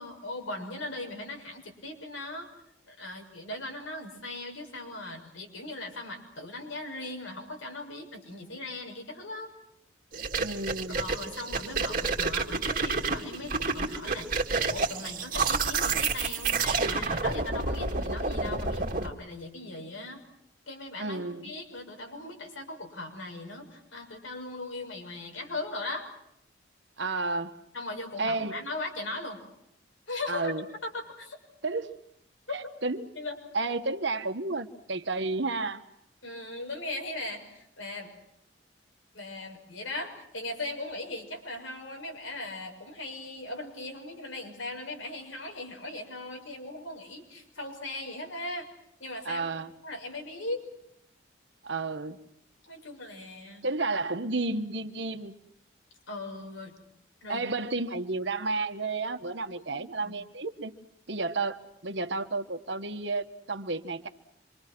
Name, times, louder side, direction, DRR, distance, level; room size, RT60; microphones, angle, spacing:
voice 1, 0.0-2.5 2.9-9.5 11.0-20.2 20.7-26.1 27.7-29.4 30.1-30.5 30.8-31.4 33.1-33.4 36.2-38.1 39.1-48.7 49.0-49.5 49.8-50.6 52.7-53.6 56.1-56.8 57.2-57.4 59.7-60.1, left 2 dB, 90° left, 3 dB, 6.5 m, -39 dB
sound 1, 10.1-19.1, right 4 dB, 45° right, 2.2 m, -29 dB
voice 2, 10.4-11.0 21.0-21.5 27.0-27.6 28.2-28.6 30.3-30.6 31.6-32.0 32.5-33.1 33.5-35.8 49.2-49.7 51.6-52.2 53.6-55.4 57.3-60.8 61.1-64.1, right 3 dB, 70° right, 8 dB, 1.5 m, -31 dB
27.0 x 25.5 x 6.2 m, 0.77 s
head